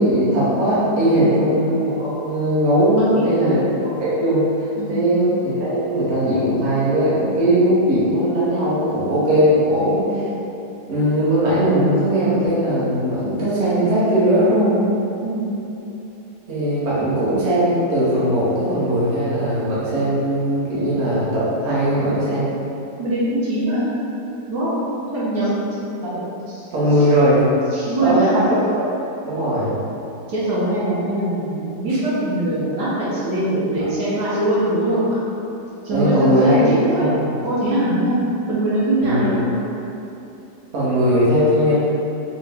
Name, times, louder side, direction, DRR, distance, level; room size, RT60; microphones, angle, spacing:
voice 1, 0.0-3.6 3.9-10.3 10.9-14.8 16.5-22.4 26.0-26.3 26.7-27.4 28.0-28.8 29.2-29.7 35.9-37.0 39.0-39.3 40.7-41.7, equal, 45° right, -10 dB, 1.0 m, -19 dB
voice 2, 3.0-3.5 4.8-5.1 15.2-15.5 23.0-23.8 24.5-24.7 25.1-25.5 26.5-26.6 27.0-27.1 27.7-28.4 30.3-35.2 35.8-37.0 37.4-38.2 38.5-39.5, right 1 dB, 65° right, -9 dB, 1.4 m, -22 dB
4.5 x 2.2 x 3.4 m, 2.9 s
omnidirectional pair, 1.9 m